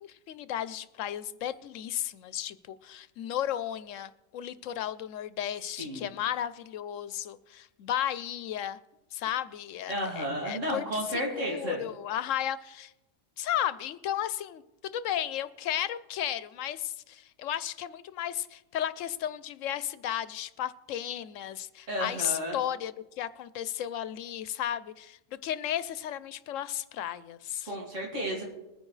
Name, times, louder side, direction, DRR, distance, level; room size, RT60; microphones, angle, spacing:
voice 1, 0.0-8.8 9.1-12.9 13.4-27.7, left 11 dB, 85° left, 15 dB, 1.0 m, -34 dB
voice 2, 9.9-11.8 21.9-22.6 27.7-28.4, equal, 75° right, -2 dB, 2.7 m, -32 dB
21.0 x 9.8 x 3.2 m, 0.97 s
omnidirectional pair, 1.3 m